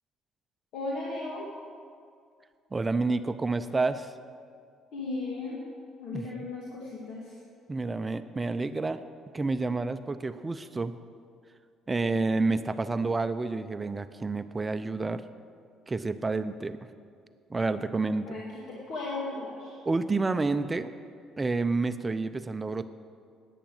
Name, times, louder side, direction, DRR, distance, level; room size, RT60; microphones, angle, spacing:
voice 1, 0.7-1.5 4.9-5.6 6.0-7.4 18.3-19.8, left 3 dB, 75° left, -4 dB, 2.2 m, -36 dB
voice 2, 2.7-4.1 6.1-6.5 7.7-9.0 9.3-10.9 11.9-15.2 15.9-16.8 17.5-18.4 19.8-20.9 21.4-22.9, right 3 dB, 20° right, 11 dB, 0.5 m, -29 dB
11.5 x 9.1 x 7.8 m, 2.2 s
cardioid pair, 115°, 0 cm